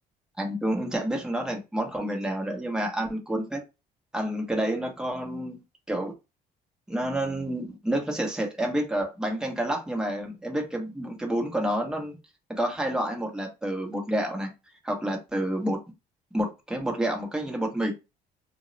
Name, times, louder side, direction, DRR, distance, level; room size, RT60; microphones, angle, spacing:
voice 1, 0.4-3.6 4.1-5.6 5.9-6.1 6.9-12.1 12.5-14.5 14.8-15.8 16.3-17.9, right 1 dB, 5° right, 0.8 m, -29 dB
2.2 x 2.0 x 3.8 m
cardioid pair, 110°, 17 cm